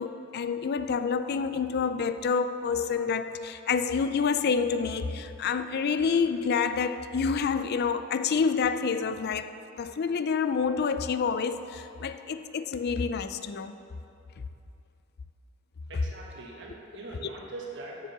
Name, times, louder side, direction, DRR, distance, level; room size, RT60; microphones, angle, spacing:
voice 1, 0.0-9.5 9.8-13.8, left 5 dB, 50° left, 11 dB, 0.4 m, -28 dB
voice 2, 15.9-18.0, right 2 dB, 65° right, -2 dB, 1.3 m, -42 dB
7.2 x 6.9 x 6.8 m, 2.8 s
head